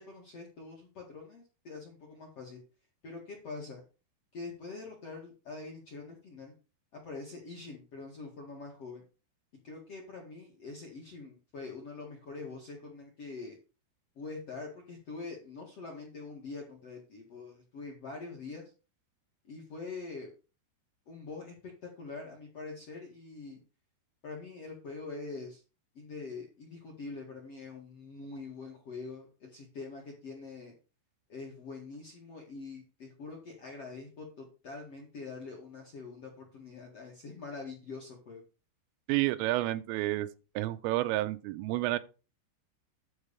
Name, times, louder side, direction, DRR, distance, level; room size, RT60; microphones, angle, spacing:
voice 1, 0.1-2.6 3.0-3.8 4.3-6.5 6.9-9.0 9.6-13.6 14.2-18.6 19.5-20.3 21.1-21.5 21.8-23.6 24.2-25.6 26.0-30.7 31.3-38.4, left 4 dB, 55° left, 1.8 m, -44 dB
voice 2, 39.1-40.3 40.6-42.0, right 16 dB, 85° right, 3.3 m, -30 dB
11.5 x 4.0 x 6.8 m
omnidirectional pair, 5.8 m